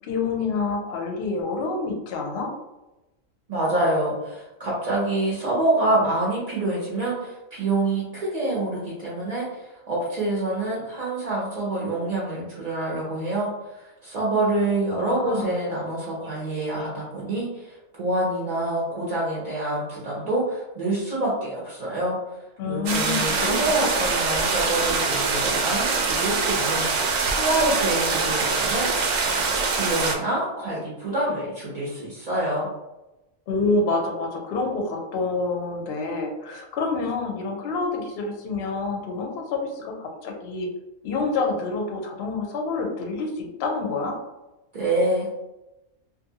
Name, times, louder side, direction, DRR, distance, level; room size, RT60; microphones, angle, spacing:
voice 1, 0.0-2.5 14.9-15.5 22.6-23.6 23.9-24.0 33.5-40.7 41.0-44.2, left 3 dB, 65° left, 2 dB, 0.7 m, -27 dB
voice 2, 3.5-32.7 44.7-45.3, right 2 dB, 45° right, -6 dB, 0.5 m, -27 dB
sound 1, 22.9-30.1, right 4 dB, 85° right, 1.0 m, -24 dB
2.6 x 2.4 x 2.7 m, 0.99 s
omnidirectional pair, 1.4 m